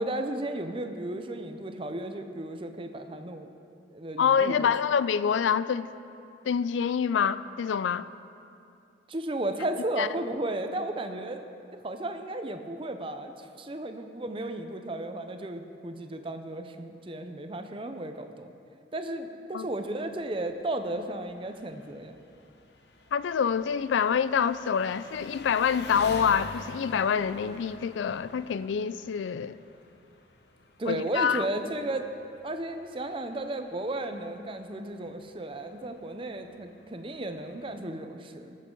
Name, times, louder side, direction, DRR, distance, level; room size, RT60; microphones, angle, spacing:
voice 1, 0.0-3.5 3.9-4.7 9.1-11.4 11.8-18.5 18.9-22.1 30.8-32.1 32.4-38.6, right 1 dB, 30° right, 0.6 m, -34 dB
voice 2, 4.2-5.9 6.5-8.1 10.0-10.1 19.5-19.7 23.1-29.6 30.9-31.5, left 7 dB, 80° left, 0.3 m, -26 dB
Engine, 19.6-37.8, left 2 dB, 60° left, 0.8 m, -48 dB
18.5 x 7.4 x 3.8 m
head